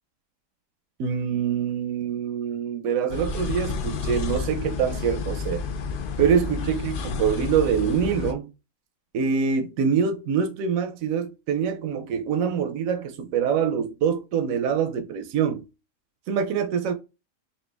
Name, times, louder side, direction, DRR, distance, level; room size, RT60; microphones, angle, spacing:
voice 1, 1.0-5.6 6.2-8.5 9.1-15.7 16.3-16.9, right 7 dB, 85° right, 1.0 m, -25 dB
sound 1, 3.1-8.3, left 5 dB, 60° left, 0.5 m, -30 dB
4.3 x 2.8 x 3.3 m
omnidirectional pair, 1.4 m